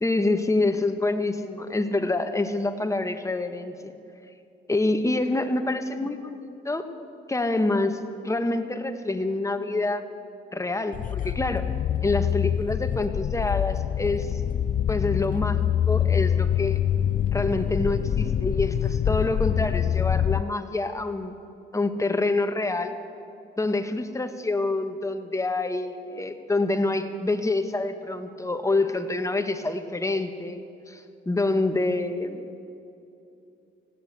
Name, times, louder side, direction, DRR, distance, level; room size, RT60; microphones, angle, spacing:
voice 1, 0.0-3.9 4.7-6.9 7.3-10.1 10.5-11.7 12.0-14.4 14.9-16.8 17.3-21.3 21.7-23.0 23.6-30.6 30.9-32.4, left 2 dB, 15° left, 8 dB, 1.5 m, -26 dB
sound 1, 10.9-20.4, left 10 dB, 40° left, 0.4 m, -25 dB
20.0 x 16.0 x 8.3 m, 2.7 s
cardioid pair, 90°, 20 cm